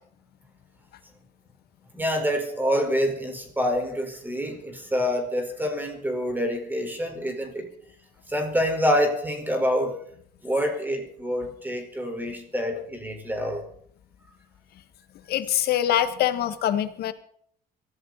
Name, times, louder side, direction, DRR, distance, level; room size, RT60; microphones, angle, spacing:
voice 1, 1.9-7.7 8.3-10.0 10.4-13.6, equal, 10° right, 4 dB, 4.7 m, -26 dB
voice 2, 15.3-17.1, left 11 dB, 70° left, 10 dB, 1.9 m, -24 dB
23.0 x 14.5 x 4.2 m, 0.62 s
cardioid pair, 110°, 17 cm